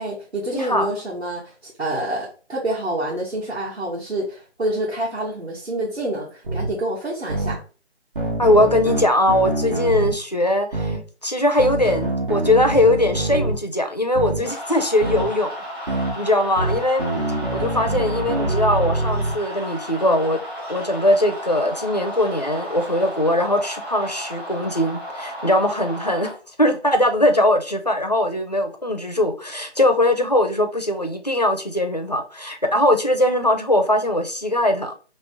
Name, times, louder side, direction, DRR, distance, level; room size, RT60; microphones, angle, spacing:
voice 1, 0.0-7.6, right 1 dB, 70° right, 1.4 m, -27 dB
voice 2, 0.5-0.9 8.4-11.0 11.2-15.5 15.9-17.0 17.5-20.4 20.7-26.3 26.6-34.9, left 1 dB, 40° left, 0.4 m, -20 dB
sound 1, 6.4-6.7 7.3-7.6 8.2-10.1 10.7-11.0 11.6-13.6 14.1-14.4 15.0-15.3 15.9-16.1 16.6-19.3, right 1 dB, 50° right, 1.2 m, -25 dB
sound 2, 14.4-26.3, equal, 20° right, 0.8 m, -34 dB
3.1 x 2.8 x 3.4 m
figure-of-eight pair, 160°, 35 cm